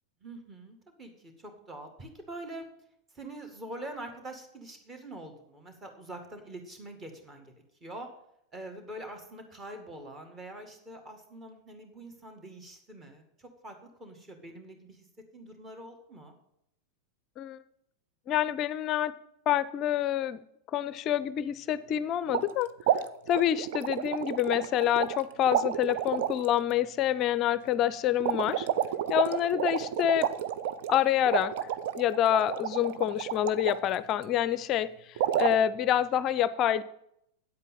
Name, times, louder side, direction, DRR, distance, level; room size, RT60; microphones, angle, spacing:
voice 1, 0.2-2.7 3.1-7.5 7.8-8.1 8.5-15.1 15.3-16.4 28.0-28.5, right 1 dB, 20° right, 5 dB, 2.1 m, -45 dB
voice 2, 18.3-19.1 19.5-20.4 20.7-22.7 23.3-28.7 29.1-30.3 30.9-31.7 32.0-36.8, left 11 dB, 35° left, 17 dB, 0.5 m, -27 dB
water blups, 22.3-22.5 22.8-25.2 25.5-26.5 28.2-33.8 35.2-35.6, right 10 dB, 50° right, 0.6 m, -30 dB
9.5 x 8.1 x 5.6 m, 0.74 s
figure-of-eight pair, 90°, 0 cm